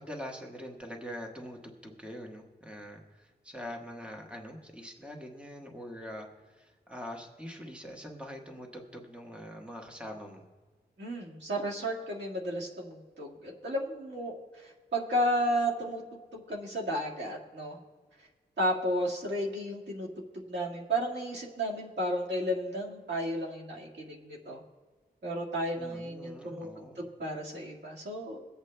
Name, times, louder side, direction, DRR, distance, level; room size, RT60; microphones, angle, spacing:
voice 1, 0.0-10.5 25.8-27.1, equal, 5° right, 1 dB, 1.2 m, -44 dB
voice 2, 11.0-16.0 16.3-17.8 18.6-20.1 20.3-24.6 25.2-26.7 27.0-28.4, equal, 90° right, -3 dB, 1.8 m, -33 dB
22.5 x 8.1 x 2.2 m, 1.4 s
wide cardioid pair, 110°, 17 cm